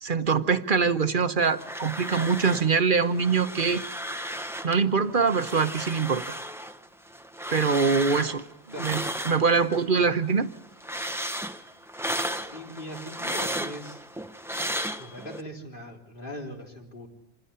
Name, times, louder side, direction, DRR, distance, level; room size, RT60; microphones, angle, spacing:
voice 1, 0.0-3.8 4.6-6.4 7.5-8.4 8.8-10.5, right 5 dB, 45° right, 10 dB, 1.1 m, -24 dB
sound 1, 1.4-2.8 3.0-4.8 5.1-9.9 10.2-15.4, equal, ahead, 0.7 m, -34 dB
voice 2, 12.5-14.0 15.0-17.1, left 1 dB, 40° left, 1 dB, 3.8 m, -40 dB
26.5 x 16.0 x 9.9 m, 0.91 s
omnidirectional pair, 1.3 m